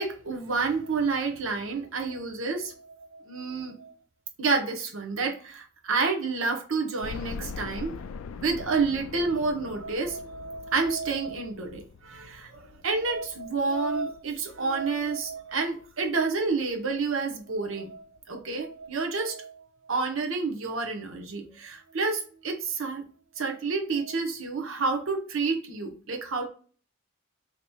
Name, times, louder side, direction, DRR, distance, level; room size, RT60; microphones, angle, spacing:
voice 1, 0.0-3.9 4.4-7.9 8.3-23.0 23.4-26.5, right 4 dB, 70° right, 2 dB, 0.8 m, -29 dB
sound 1, 7.0-15.9 16.4-16.5 16.9-17.0 18.2-18.3 18.5-18.6, left 5 dB, 75° left, 0.3 m, -43 dB
4.7 x 2.9 x 2.2 m, 0.41 s
head